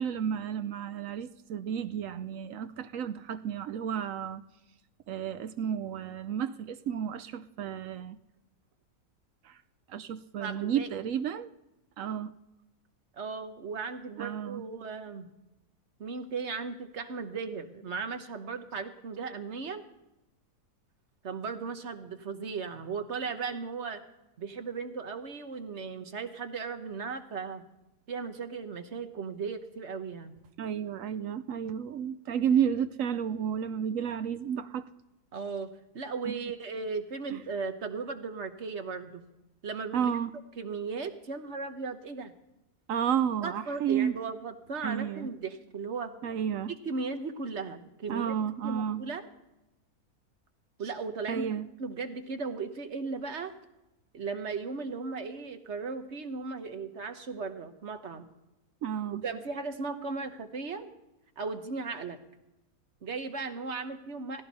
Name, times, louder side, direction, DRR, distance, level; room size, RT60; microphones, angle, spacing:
voice 1, 0.0-4.4 5.1-8.2 9.5-9.6 9.9-11.5 12.0-12.3 14.2-14.7 30.6-34.8 36.3-36.4 37.3-37.4 39.9-40.3 42.9-44.1 44.8-45.3 46.2-46.7 48.1-49.0 51.3-51.7 58.8-59.2, right 8 dB, 65° right, 13 dB, 0.9 m, -31 dB
voice 2, 10.4-10.9 13.1-15.3 16.0-19.8 21.2-24.0 24.4-27.6 28.1-30.3 35.3-39.2 39.6-40.1 40.6-42.3 43.4-46.1 46.8-48.3 48.6-49.3 50.8-51.5 51.8-53.5 54.1-58.3 59.2-60.9 61.4-62.2 63.0-64.4, right 4 dB, 50° right, 8 dB, 1.3 m, -36 dB
17.0 x 16.0 x 4.1 m, 0.96 s
omnidirectional pair, 1.7 m